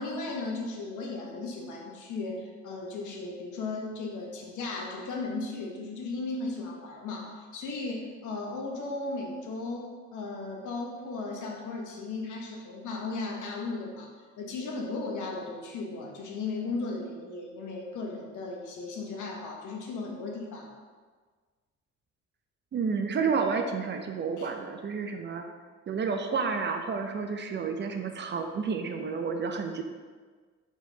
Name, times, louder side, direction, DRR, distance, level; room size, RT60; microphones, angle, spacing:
voice 1, 0.0-14.1 14.4-20.7 24.4-24.5, left 3 dB, 75° left, 0 dB, 1.0 m, -36 dB
voice 2, 22.7-25.4 25.9-29.8, right 5 dB, 40° right, 5 dB, 0.4 m, -30 dB
4.4 x 4.3 x 2.7 m, 1.5 s
cardioid pair, 90°, 30 cm